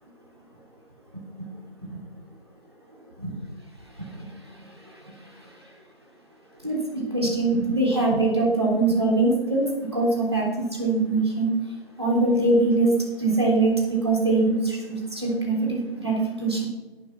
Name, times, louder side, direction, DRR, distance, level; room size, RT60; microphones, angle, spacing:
voice 1, 4.5-5.5 6.6-11.5 12.0-12.9 13.2-16.7, right 2 dB, 25° right, -3 dB, 3.3 m, -23 dB
17.0 x 11.0 x 5.8 m, 1.2 s
figure-of-eight pair, 180°, 30 cm